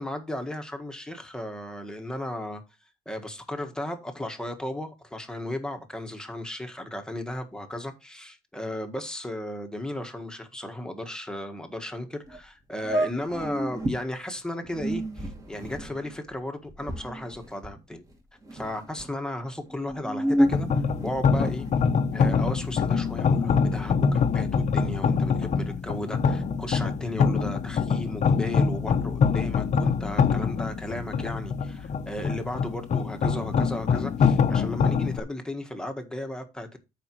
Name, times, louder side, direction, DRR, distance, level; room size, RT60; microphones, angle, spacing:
voice 1, 0.0-2.6 3.0-18.0 18.5-20.7 21.0-21.7 22.1-36.8, left 1 dB, 5° left, 1.5 m, -35 dB
sound 1, 12.3-12.4 12.8-14.0 14.6-18.1 18.4-19.1 19.7-21.7, equal, 20° right, 2.3 m, -29 dB
sound 2, 20.4-35.2, left 5 dB, 45° left, 0.9 m, -24 dB
13.5 x 5.1 x 3.0 m
cardioid pair, 110°, 17 cm